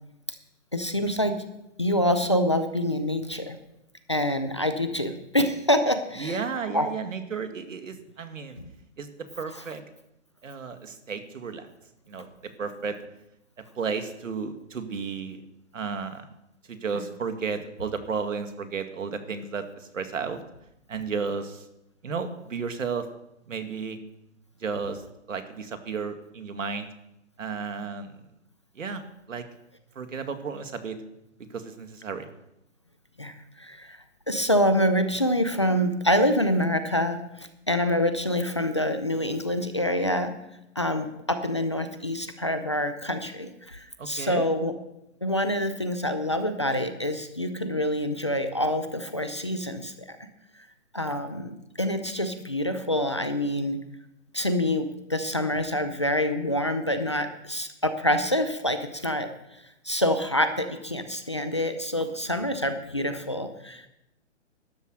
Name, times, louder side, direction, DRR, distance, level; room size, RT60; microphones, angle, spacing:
voice 1, 0.7-1.4 1.8-3.6 4.1-6.4 6.7-6.9 8.6-8.7 33.2-34.0 34.3-40.3 40.8-44.7 45.2-50.2 50.9-53.8 54.3-63.9, left 1 dB, 25° left, 8 dB, 0.5 m, -26 dB
voice 2, 6.2-8.6 9.0-9.1 9.4-9.8 10.4-11.7 12.1-13.0 13.8-15.4 15.7-16.3 16.7-20.4 20.9-21.7 22.0-23.1 23.5-24.0 24.6-25.0 25.3-26.9 27.4-28.1 28.8-29.4 30.0-31.0 31.5-32.3 44.0-44.5, right 5 dB, 85° right, 7 dB, 2.2 m, -33 dB
13.0 x 10.5 x 6.6 m, 0.87 s
hypercardioid pair, 180°, 37 cm